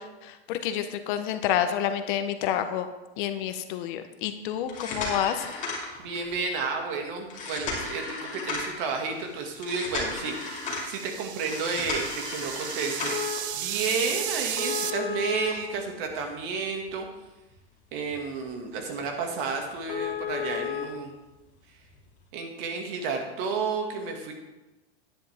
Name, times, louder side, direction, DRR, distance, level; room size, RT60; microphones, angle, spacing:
voice 1, 0.0-2.9 3.2-5.5, left 10 dB, 50° left, 9 dB, 0.9 m, -29 dB
sound 1, 4.6-6.3 7.3-8.8 9.6-10.9 11.4-13.4 14.6-16.4 16.9-17.0 17.5-17.6 18.1-18.2 18.5-18.6 19.0-19.1 19.4-19.5 19.9-20.8 21.9-22.0, left 5 dB, 25° left, 2.6 m, -33 dB
voice 2, 6.0-17.1 17.9-21.1 22.3-24.3, right 4 dB, 50° right, 3 dB, 2.1 m, -31 dB
sound 2, 9.8-14.9, right 10 dB, 80° right, 0.8 m, -35 dB
10.5 x 10.0 x 3.5 m, 1.1 s
supercardioid pair, 140°, 32 cm